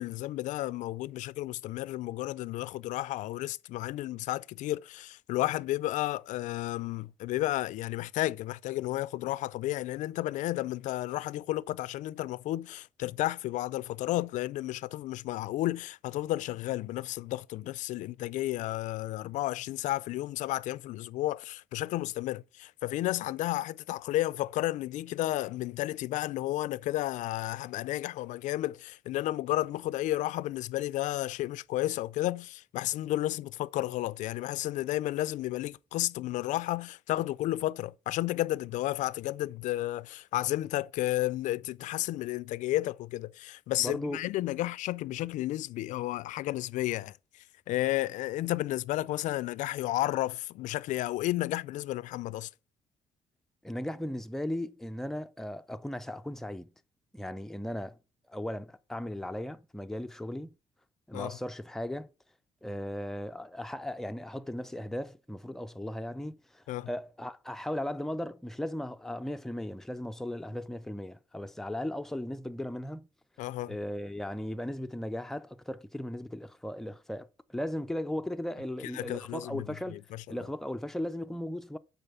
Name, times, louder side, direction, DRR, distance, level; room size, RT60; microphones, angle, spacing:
voice 1, 0.0-47.2 47.7-52.5 61.1-61.4 66.7-66.9 73.4-73.7 78.9-80.4, left 15 dB, 75° left, 0.4 m, -32 dB
voice 2, 43.8-44.2 53.6-56.7 57.1-58.0 58.3-60.5 61.1-62.1 62.6-73.1 73.7-81.8, left 1 dB, 5° left, 0.4 m, -37 dB
8.8 x 4.2 x 6.9 m
cardioid pair, 145°, 13 cm